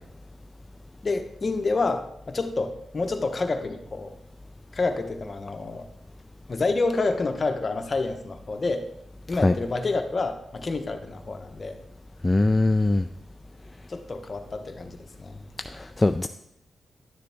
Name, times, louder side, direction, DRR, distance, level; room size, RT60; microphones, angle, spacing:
voice 1, 1.0-4.1 4.7-5.9 6.5-8.8 9.3-11.8 13.9-15.4, left 3 dB, 45° left, 6 dB, 0.9 m, -28 dB
voice 2, 12.2-13.0 15.7-16.3, left 2 dB, 20° left, 7 dB, 0.3 m, -21 dB
11.0 x 6.7 x 3.5 m, 0.82 s
cardioid pair, 75°, 0 cm